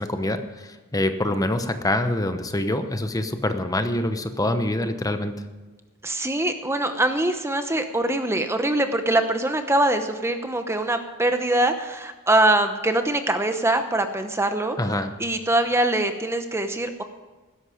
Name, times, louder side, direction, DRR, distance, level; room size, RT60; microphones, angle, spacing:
voice 1, 0.0-5.4 14.8-15.1, left 1 dB, 15° left, 8 dB, 0.9 m, -25 dB
voice 2, 6.0-14.8 15.2-17.0, right 1 dB, 10° right, 7 dB, 0.8 m, -23 dB
16.0 x 13.0 x 5.0 m, 1.2 s
head